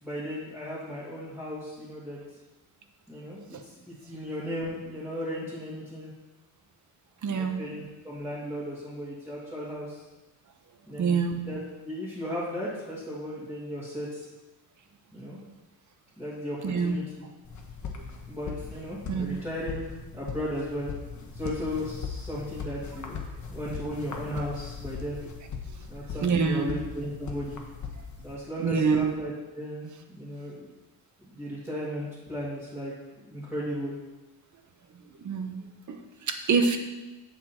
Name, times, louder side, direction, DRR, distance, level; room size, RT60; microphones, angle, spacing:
voice 1, 0.0-2.2 3.1-6.1 7.3-10.0 10.9-14.3 15.1-15.4 16.2-17.0 18.3-19.9 20.1-20.9 21.3-25.2 25.9-27.6 28.2-30.7 31.3-33.9, equal, 5° right, -10 dB, 2.2 m, -36 dB
voice 2, 7.2-7.6 11.0-11.4 16.6-17.0 18.0-18.1 19.1-19.4 25.7-25.8 26.2-26.8 28.6-29.1 34.9-35.6 35.9-36.8, right 5 dB, 45° right, 6 dB, 0.9 m, -26 dB
sound 1, 17.4-28.4, left 5 dB, 45° left, 1.2 m, -39 dB
7.6 x 7.3 x 4.3 m, 1.1 s
cardioid pair, 140°, 41 cm